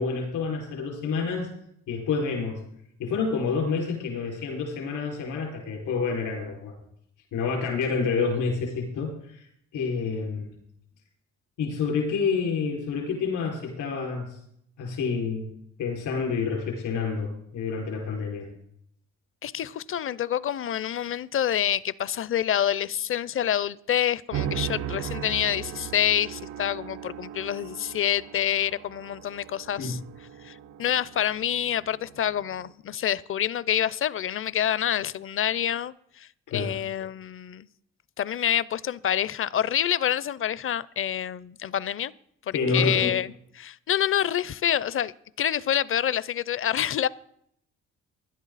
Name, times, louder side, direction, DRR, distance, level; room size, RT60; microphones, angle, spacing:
voice 1, 0.0-1.5 1.9-2.6 3.0-6.7 7.3-9.5 9.7-10.6 11.6-14.4 14.8-15.5 15.8-18.5 29.8-30.0 36.5-36.7 42.5-43.1, left 5 dB, 85° left, 5.3 m, -28 dB
voice 2, 19.4-30.0 30.4-36.3 36.5-37.7 38.2-42.1 42.7-43.3 43.6-47.1, left 10 dB, 45° left, 0.6 m, -27 dB
sound 1, 24.3-32.7, right 10 dB, 90° right, 0.7 m, -37 dB
16.5 x 11.5 x 4.1 m
cardioid pair, 90°, 30 cm